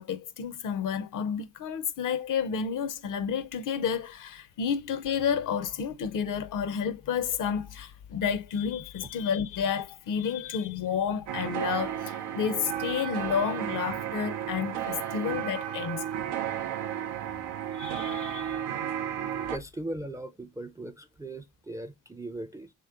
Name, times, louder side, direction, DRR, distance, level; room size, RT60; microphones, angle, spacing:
voice 1, 0.0-16.0 17.7-18.6, left 7 dB, 55° left, 0.5 m, -31 dB
sound 1, 11.3-19.6, right 10 dB, 90° right, 0.5 m, -33 dB
voice 2, 16.4-17.3 19.5-22.7, right 1 dB, 10° right, 0.4 m, -39 dB
3.0 x 2.9 x 2.4 m
supercardioid pair, 50°, 39 cm